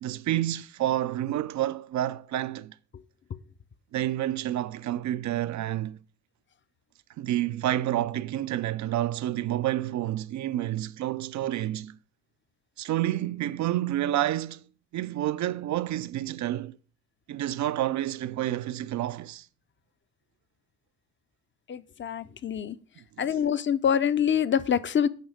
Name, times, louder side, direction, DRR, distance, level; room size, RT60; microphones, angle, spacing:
voice 1, 0.0-2.8 3.9-6.0 7.2-12.0 12.8-14.6 14.9-16.8 17.3-19.5 23.2-23.4, right 13 dB, 50° right, 0.5 m, -29 dB
voice 2, 21.7-22.8 23.2-25.1, left 8 dB, 30° left, 0.7 m, -25 dB
9.3 x 5.5 x 4.9 m
hypercardioid pair, 45°, 39 cm